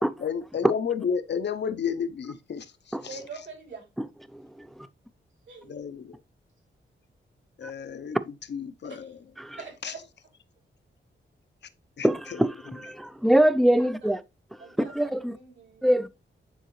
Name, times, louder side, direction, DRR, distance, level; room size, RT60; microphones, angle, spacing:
voice 1, 0.2-3.2 5.7-6.2 7.6-8.2 8.5-9.2 9.8-9.9 12.0-12.1, left 7 dB, 60° left, 0.7 m, -31 dB
voice 2, 3.1-3.9 5.5-5.7 8.8-9.1 9.5-10.0 13.8-14.1 14.6-16.0, right 5 dB, 70° right, 3.1 m, -44 dB
voice 3, 4.3-4.9 9.4-9.6 12.0-14.2 14.9-15.4 15.8-16.1, right 1 dB, ahead, 0.4 m, -24 dB
9.1 x 3.7 x 3.1 m
cardioid pair, 90°, 20 cm